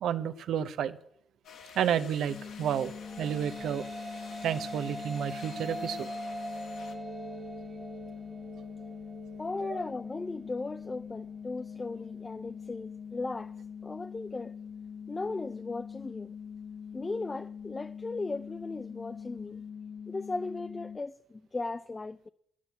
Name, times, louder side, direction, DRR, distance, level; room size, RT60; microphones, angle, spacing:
voice 1, 0.0-1.0 1.8-3.9 4.4-6.1 9.7-9.8, right 9 dB, 75° right, 0.7 m, -31 dB
sound 1, 1.4-6.9, left 6 dB, 75° left, 1.7 m, -51 dB
sound 2, 2.3-21.0, left 7 dB, 45° left, 1.0 m, -43 dB
sound 3, 2.8-11.3, right 1 dB, 35° right, 1.8 m, -43 dB
voice 2, 9.4-14.6 15.1-16.3 16.9-19.6 20.1-22.3, left 3 dB, 25° left, 0.4 m, -37 dB
10.5 x 7.4 x 8.4 m
supercardioid pair, 60°, 0 cm